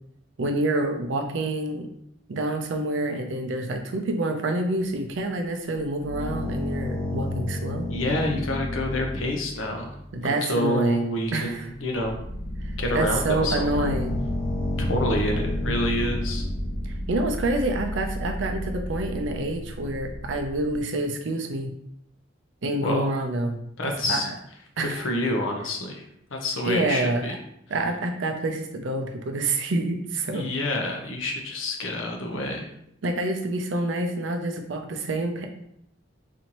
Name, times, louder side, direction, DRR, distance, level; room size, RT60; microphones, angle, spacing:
voice 1, 0.4-1.9 2.3-7.9 10.1-11.1 11.3-11.7 12.6-14.2 17.1-21.7 22.6-23.6 24.1-24.3 24.8-25.1 26.6-27.3 27.7-30.5 33.0-35.5, right 2 dB, 70° right, 4 dB, 0.6 m, -27 dB
sound 1, 5.8-10.2 11.2-11.3 11.7-20.8, left 1 dB, 55° left, 1.1 m, -31 dB
voice 2, 7.9-9.9 10.2-12.2 12.8-13.9 14.8-16.4 22.8-23.1 23.8-24.3 24.8-26.0 26.3-27.3 30.3-32.7, left 1 dB, 85° left, 2 dB, 0.8 m, -28 dB
4.2 x 2.7 x 3.0 m, 0.75 s
head